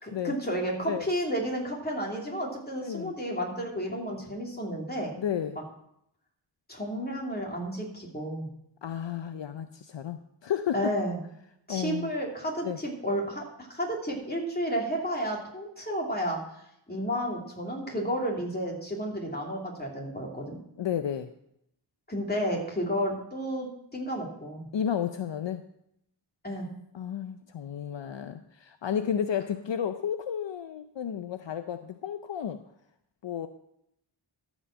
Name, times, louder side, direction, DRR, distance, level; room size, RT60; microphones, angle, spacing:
voice 1, 0.0-5.1 6.7-8.5 10.7-11.2 11.7-16.4 16.9-20.6 22.1-24.7 26.4-26.7, equal, 20° left, -1 dB, 2.8 m, -32 dB
voice 2, 2.8-3.1 5.2-5.6 8.8-10.9 11.7-12.1 12.6-12.8 20.8-21.3 24.7-25.6 26.9-32.6 33.2-33.5, left 9 dB, 70° left, 9 dB, 0.6 m, -32 dB
13.5 x 5.2 x 6.3 m, 0.76 s
wide cardioid pair, 80°, 46 cm